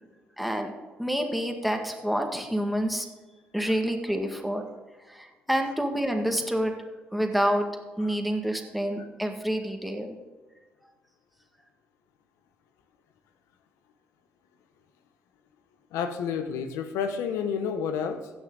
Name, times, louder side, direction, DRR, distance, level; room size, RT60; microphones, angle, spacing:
voice 1, 0.4-0.7 1.0-3.1 3.5-4.6 5.1-6.7 7.1-7.7 8.0-10.1, equal, ahead, 3 dB, 2.0 m, -28 dB
voice 2, 15.9-18.3, left 7 dB, 80° left, 9 dB, 1.0 m, -30 dB
16.0 x 6.2 x 4.0 m, 1.3 s
supercardioid pair, 55°, 5 cm